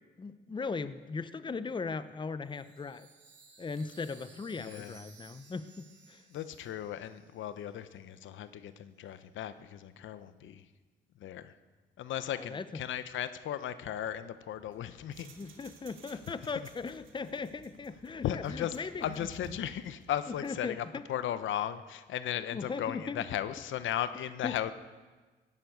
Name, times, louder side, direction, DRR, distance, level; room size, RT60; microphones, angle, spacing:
voice 1, 0.2-3.1 3.6-6.2 12.3-12.6 15.2-19.0 20.4-21.0 22.5-23.2 24.4-24.5, left 4 dB, 25° left, 13 dB, 0.8 m, -38 dB
Chime, 2.4-8.0, right 5 dB, 65° right, 3.5 m, -59 dB
voice 2, 4.6-5.0 6.3-10.7 11.2-11.5 12.0-15.3 16.1-16.7 18.2-24.7, left 10 dB, 75° left, 12 dB, 0.9 m, -36 dB
sound 1, 14.5-20.7, right 4 dB, 80° right, 2.5 m, -56 dB
16.0 x 11.0 x 8.0 m, 1.3 s
cardioid pair, 90°, 20 cm